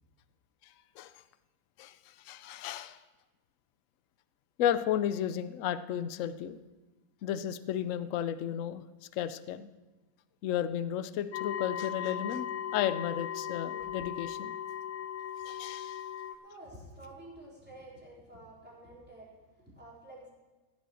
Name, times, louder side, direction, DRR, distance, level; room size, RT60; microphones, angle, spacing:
voice 1, 1.8-3.0 4.6-6.6 7.2-8.8 9.1-9.7 10.4-12.5 12.7-14.5 15.5-16.0, left 10 dB, 65° left, 13 dB, 0.8 m, -33 dB
sound 1, 11.3-16.4, left 10 dB, 85° left, 1.3 m, -37 dB
voice 2, 16.4-20.3, right 1 dB, 5° right, -6 dB, 3.7 m, -50 dB
15.0 x 7.6 x 6.2 m, 1.2 s
omnidirectional pair, 1.9 m